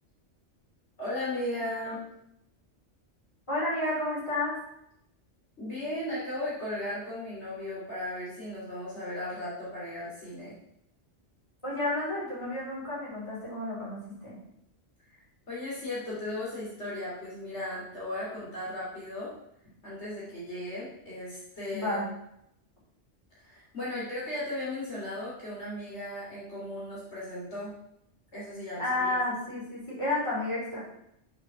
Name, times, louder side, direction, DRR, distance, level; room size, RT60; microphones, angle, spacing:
voice 1, 1.0-2.0 5.6-10.5 15.1-15.2 15.5-19.3 19.8-22.0 23.4-27.7 28.3-29.1, left 1 dB, 65° left, -7 dB, 3.8 m, -36 dB
voice 2, 3.5-4.6 11.6-14.4 21.7-22.0 28.8-30.8, left 2 dB, 25° left, -7 dB, 4.6 m, -31 dB
7.5 x 6.1 x 6.9 m, 0.77 s
omnidirectional pair, 1.2 m